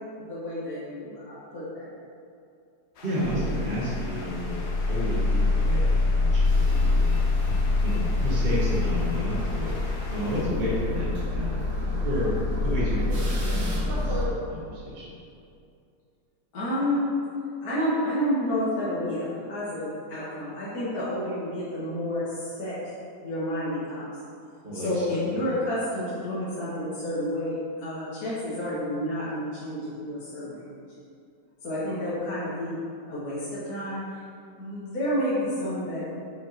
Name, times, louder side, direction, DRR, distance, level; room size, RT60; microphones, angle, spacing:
voice 1, 0.3-1.8 16.5-17.1 17.6-22.9 23.2-24.0 24.7-30.8 31.6-32.8 33.1-34.0 34.6-36.0, equal, 65° left, -11 dB, 1.8 m, -30 dB
sound 1, 3.0-10.5, left 2 dB, 85° left, 1.3 m, -44 dB
voice 2, 3.0-4.6 4.9-7.4 7.8-9.7 10.1-12.3 12.6-15.0 24.6-25.3, equal, 35° right, -7 dB, 1.1 m, -31 dB
sound 2, 3.2-14.3, left 2 dB, 80° right, 2.1 m, -25 dB
7.3 x 6.0 x 2.8 m, 2.5 s
omnidirectional pair, 1.7 m